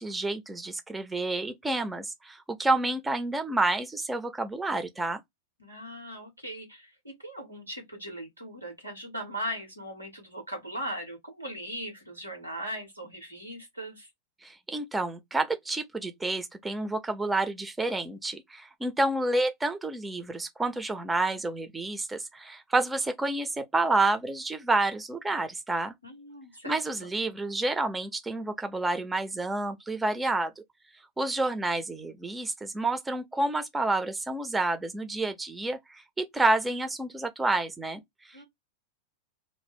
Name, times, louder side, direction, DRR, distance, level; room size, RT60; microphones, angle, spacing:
voice 1, 0.0-5.2 14.4-25.9 26.6-30.6 31.2-38.4, right 2 dB, 10° right, 0.5 m, -29 dB
voice 2, 5.6-14.1 26.0-26.8 38.3-38.4, equal, 90° right, 1.3 m, -39 dB
2.5 x 2.0 x 3.4 m
figure-of-eight pair, 90°, 0 cm